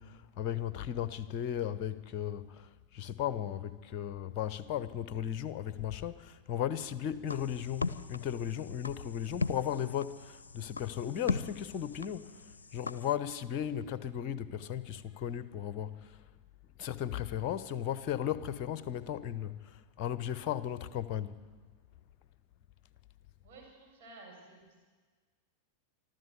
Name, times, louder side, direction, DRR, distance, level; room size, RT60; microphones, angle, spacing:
voice 1, 0.0-12.3 12.7-16.2 16.8-21.4, left 10 dB, 40° left, 1.0 m, -36 dB
sound 1, 7.3-13.2, left 4 dB, 75° left, 0.6 m, -39 dB
voice 2, 23.4-24.9, right 3 dB, 50° right, 7.4 m, -53 dB
24.5 x 13.5 x 8.0 m
figure-of-eight pair, 90°, 0 cm